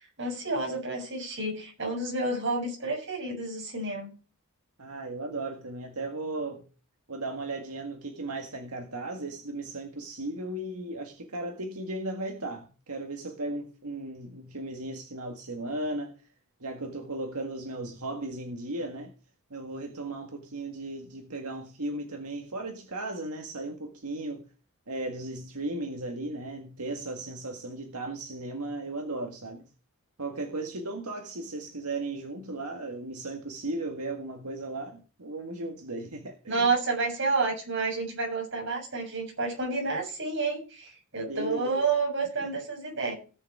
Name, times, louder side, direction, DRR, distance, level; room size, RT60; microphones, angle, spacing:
voice 1, 0.0-4.1 36.5-43.1, right 3 dB, 55° right, 7.2 m, -30 dB
voice 2, 4.8-6.7 7.1-16.1 16.6-19.1 19.5-24.5 24.9-29.7 30.2-36.7 41.3-41.8 42.4-42.5, right 2 dB, 85° right, 1.8 m, -36 dB
18.5 x 6.8 x 4.8 m
head